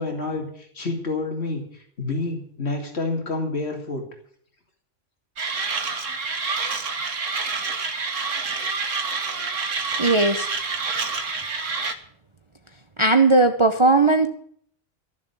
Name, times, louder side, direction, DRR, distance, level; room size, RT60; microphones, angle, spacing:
voice 1, 0.0-4.0, left 3 dB, 55° left, 2 dB, 2.9 m, -28 dB
Mechanisms, 5.4-11.9, right 4 dB, 80° right, 1.7 m, -27 dB
voice 2, 10.0-10.5 13.0-14.3, right 3 dB, 25° right, 6 dB, 0.9 m, -17 dB
14.0 x 7.3 x 9.7 m, 0.62 s
omnidirectional pair, 1.3 m